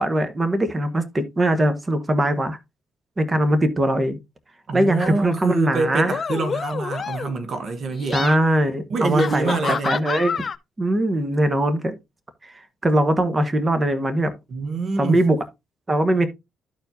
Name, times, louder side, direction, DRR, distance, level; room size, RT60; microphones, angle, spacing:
voice 1, 0.0-2.6 3.2-4.2 4.7-6.2 8.1-9.5 9.8-10.4 10.8-12.0 12.4-12.5 12.8-14.3 15.0-15.4 15.9-16.3, right 1 dB, 25° right, 1.2 m, -21 dB
voice 2, 4.7-8.2 8.9-10.0 14.5-15.2, right 3 dB, 55° right, 1.0 m, -25 dB
sound 1, 5.0-5.3 6.0-7.4 7.9-8.4 9.2-10.6, left 6 dB, 40° left, 0.6 m, -28 dB
13.0 x 4.5 x 2.7 m
cardioid pair, 90°, 0 cm